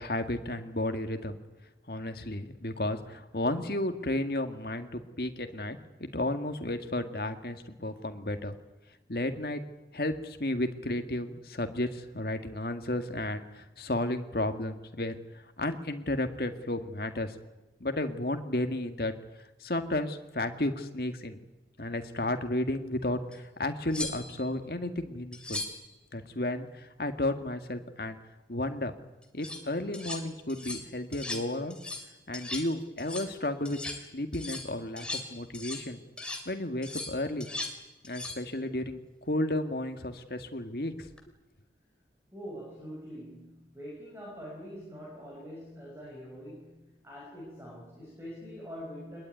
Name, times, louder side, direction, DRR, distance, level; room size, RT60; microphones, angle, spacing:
voice 1, 0.0-1.4 1.9-8.5 9.1-9.6 9.9-15.2 15.6-17.4 17.8-19.1 19.6-21.4 21.8-25.6 26.1-28.2 28.5-28.9 29.3-31.8 32.3-36.0 36.5-37.5 38.0-39.0 39.3-41.1, left 1 dB, 55° left, 7 dB, 2.0 m, -33 dB
sound 1, 23.3-23.4 23.9-24.5 25.3-25.9 29.2-29.6 29.9-30.2 30.5-30.9 31.1-31.5 31.7-32.1 32.3-32.7 33.0-33.3 33.7-34.0 34.3-35.9 36.2-36.5 36.8-37.8 38.0-38.4 41.0-41.2, left 2 dB, 5° left, 2.9 m, -38 dB
voice 2, 42.3-49.2, equal, 15° right, -3 dB, 5.9 m, -44 dB
23.5 x 21.0 x 9.4 m, 1.1 s
head